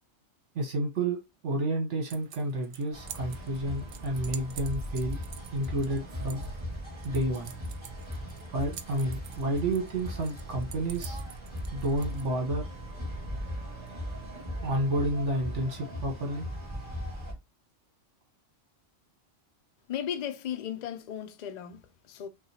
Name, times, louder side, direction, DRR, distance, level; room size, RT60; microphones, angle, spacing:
voice 1, 0.5-1.2 1.4-5.2 5.5-6.4 7.0-7.5 8.5-11.2 11.7-12.7 14.6-16.4, right 1 dB, 60° right, 1.4 m, -30 dB
sound 1, 2.1-12.3, right 8 dB, 85° right, 1.0 m, -48 dB
sound 2, 2.9-17.3, equal, 20° right, 2.2 m, -38 dB
voice 2, 19.9-22.3, left 9 dB, 75° left, 0.4 m, -36 dB
6.3 x 2.3 x 2.8 m
omnidirectional pair, 1.4 m